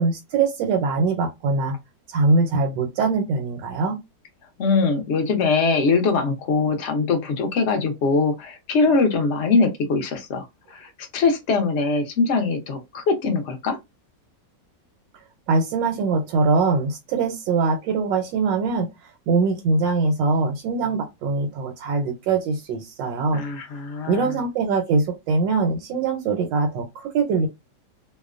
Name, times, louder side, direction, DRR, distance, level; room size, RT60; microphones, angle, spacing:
voice 1, 0.0-1.8 2.1-4.0 15.5-18.9 19.3-23.4 24.1-27.5, right 4 dB, 85° right, 1.2 m, -22 dB
voice 2, 4.6-13.8 23.3-24.4, left 4 dB, 65° left, 0.7 m, -22 dB
2.8 x 2.0 x 2.4 m
omnidirectional pair, 1.9 m